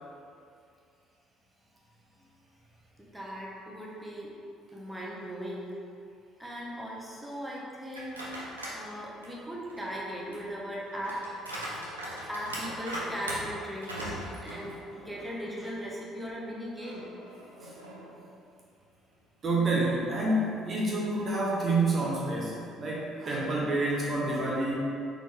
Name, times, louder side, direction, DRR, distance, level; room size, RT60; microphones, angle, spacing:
voice 1, 3.0-4.4 4.7-5.7 6.4-8.3 8.7-11.2 12.3-17.1, equal, 10° right, -4 dB, 0.9 m, -38 dB
sound 1, 7.9-8.8 9.2-15.3 15.7-15.8 16.8-18.3, right 1 dB, 85° right, 0.6 m, -40 dB
voice 2, 19.4-24.7, right 2 dB, 40° right, -5 dB, 0.8 m, -28 dB
4.2 x 3.3 x 3.3 m, 2.4 s
figure-of-eight pair, 50°, 0 cm